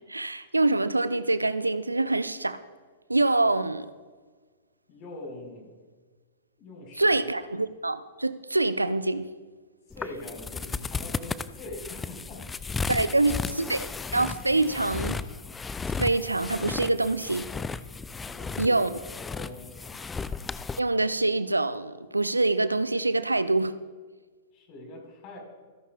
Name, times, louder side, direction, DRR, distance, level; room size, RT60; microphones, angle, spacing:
voice 1, 0.1-2.6 3.1-3.9 7.0-9.3 12.9-13.9 14.1-15.2 16.0-17.5 18.6-18.9 20.8-23.7, right 2 dB, 85° right, 14 dB, 0.6 m, -25 dB
voice 2, 4.9-5.7 6.6-7.2 9.9-12.6 13.0-13.4 18.3-18.8 19.3-20.0 24.5-25.4, left 2 dB, 35° left, 0 dB, 4.9 m, -43 dB
sound 1, 9.9-20.8, left 4 dB, 10° left, 0.4 m, -35 dB
26.5 x 11.0 x 2.4 m, 1.5 s
figure-of-eight pair, 105°, 0 cm